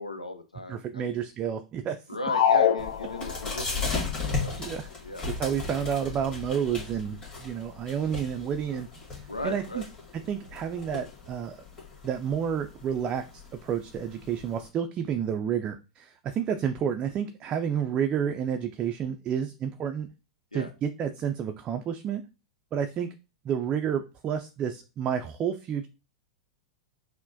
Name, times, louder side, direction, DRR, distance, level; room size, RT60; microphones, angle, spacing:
voice 1, 0.0-1.1 2.1-5.3 9.3-9.9 20.5-20.7, left 1 dB, 90° left, 8 dB, 0.6 m, -38 dB
voice 2, 0.7-2.0 4.6-4.9 5.3-9.8 10.3-11.6 12.0-13.3 13.5-20.1 20.5-22.2 22.7-23.1 23.4-25.9, right 8 dB, 30° right, 6 dB, 0.4 m, -30 dB
sound 1, 2.2-3.7, left 8 dB, 55° left, 0.4 m, -24 dB
sound 2, 2.8-14.7, left 4 dB, 20° left, 1.6 m, -37 dB
5.8 x 2.1 x 2.6 m, 0.30 s
figure-of-eight pair, 95°, 4 cm